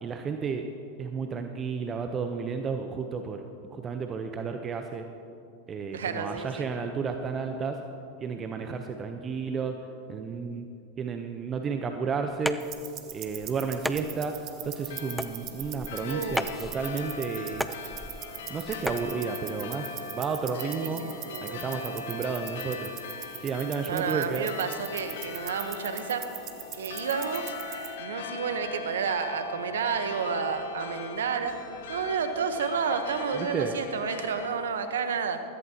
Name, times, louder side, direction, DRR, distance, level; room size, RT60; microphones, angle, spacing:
voice 1, 0.0-0.6 1.0-3.4 3.7-5.0 5.7-7.8 8.2-9.7 10.1-10.7 11.0-12.6 13.1-14.4 14.6-17.7 18.5-21.0 21.4-22.9 23.4-24.5 33.3-33.7, right 5 dB, 30° right, 6 dB, 0.8 m, -32 dB
voice 2, 5.9-6.7 16.1-16.7 20.8-21.6 23.9-26.3 26.7-27.5 28.0-31.6 31.9-35.4, right 6 dB, 75° right, 8 dB, 1.0 m, -31 dB
sound 1, 12.3-19.1, left 1 dB, ahead, 0.5 m, -37 dB
sound 2, 12.6-27.9, right 12 dB, 45° right, 1.1 m, -42 dB
sound 3, 14.7-34.5, left 4 dB, 70° left, 1.0 m, -40 dB
16.0 x 14.5 x 2.9 m, 2.6 s
hypercardioid pair, 90°, 0 cm